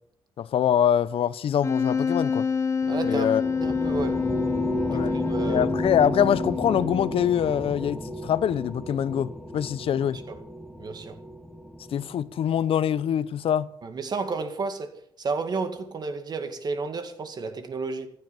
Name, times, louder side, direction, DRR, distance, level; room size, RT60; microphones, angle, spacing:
voice 1, 0.4-2.5 3.0-3.4 4.9-5.2 5.5-10.2 11.9-13.7, left 9 dB, 65° left, 0.7 m, -24 dB
Wind instrument woodwind instrument, 1.6-7.3, left 5 dB, 30° left, 1.2 m, -27 dB
sound 1, 2.8-12.6, right 1 dB, ahead, 1.5 m, -33 dB
voice 2, 2.9-4.3 4.9-5.7 10.1-10.4 10.8-11.2 13.8-18.1, right 4 dB, 40° right, 2.1 m, -32 dB
14.5 x 11.0 x 7.3 m
wide cardioid pair, 145°, 10 cm